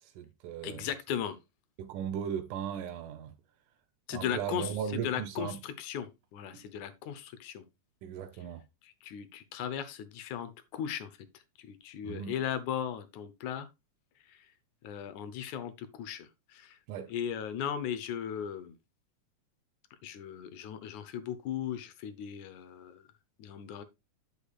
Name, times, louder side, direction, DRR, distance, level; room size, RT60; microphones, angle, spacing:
voice 1, 0.0-0.9 1.8-3.3 4.1-5.6 6.5-6.6 8.0-8.6 12.0-12.4 16.9-17.1, right 8 dB, 90° right, 2.3 m, -37 dB
voice 2, 0.6-1.4 4.1-7.6 8.8-11.1 11.6-13.7 14.3-14.5 14.8-16.8 17.1-18.8 20.0-23.1 23.4-23.8, left 9 dB, 75° left, 2.2 m, -37 dB
8.3 x 8.1 x 2.4 m
omnidirectional pair, 3.5 m